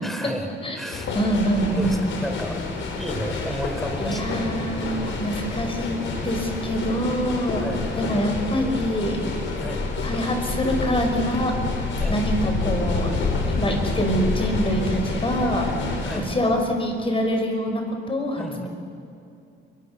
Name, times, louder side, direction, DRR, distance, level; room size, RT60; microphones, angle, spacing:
voice 1, 0.0-0.5 0.7-1.1 1.7-2.6 2.9-4.3 7.5-7.9 9.5-9.9 12.0-12.2 16.0-16.3 18.4-18.7, equal, ahead, 6 dB, 3.9 m, -33 dB
voice 2, 0.6-2.2 4.0-7.7 7.9-9.2 10.0-11.5 12.1-13.1 13.5-15.7 16.2-18.7, equal, 25° left, 4 dB, 6.0 m, -25 dB
sound 1, 0.9-16.2, left 3 dB, 75° left, 5.2 m, -28 dB
28.5 x 23.0 x 7.1 m, 2.6 s
cardioid pair, 90°, 20 cm